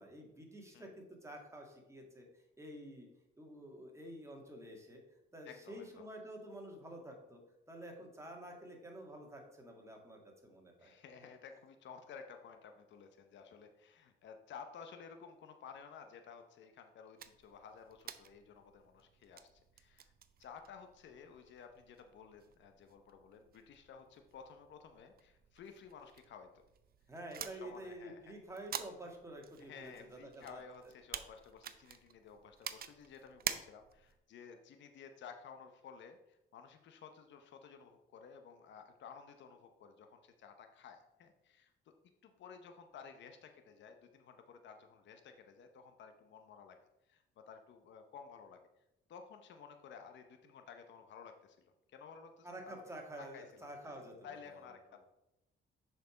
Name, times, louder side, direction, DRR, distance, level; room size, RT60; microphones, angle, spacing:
voice 1, 0.0-3.1 3.4-5.0 5.3-7.4 7.7-10.9 27.1-30.6 52.4-54.7, right 1 dB, 15° right, 1 dB, 1.8 m, -49 dB
voice 2, 5.4-6.0 10.8-19.5 19.8-20.1 20.4-26.5 27.4-28.4 29.6-41.9 42.2-46.8 47.1-48.6 49.1-52.8 53.2-55.0, left 6 dB, 65° left, 6 dB, 0.8 m, -54 dB
sound 1, 17.2-34.2, right 9 dB, 50° right, 0.5 m, -49 dB
6.6 x 4.6 x 4.9 m, 0.89 s
cardioid pair, 90°, 20 cm